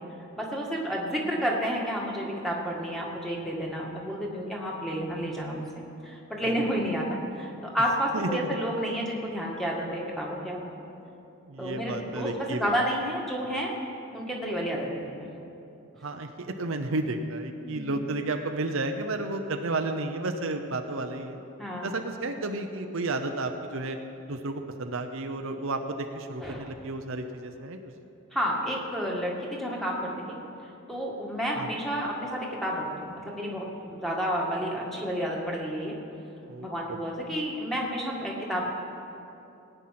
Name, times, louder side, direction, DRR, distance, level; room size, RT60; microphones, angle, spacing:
voice 1, 0.3-5.6 6.0-10.6 11.6-13.7 14.1-15.3 17.6-17.9 21.6-22.0 26.4-26.7 28.3-30.4 30.9-36.0 36.6-38.7, equal, ahead, -3 dB, 1.8 m, -30 dB
voice 2, 11.5-12.7 16.0-21.4 21.8-24.0 24.3-27.8 31.6-31.7 36.5-37.0, right 2 dB, 65° right, 5 dB, 0.8 m, -32 dB
18.5 x 9.1 x 5.9 m, 2.8 s
head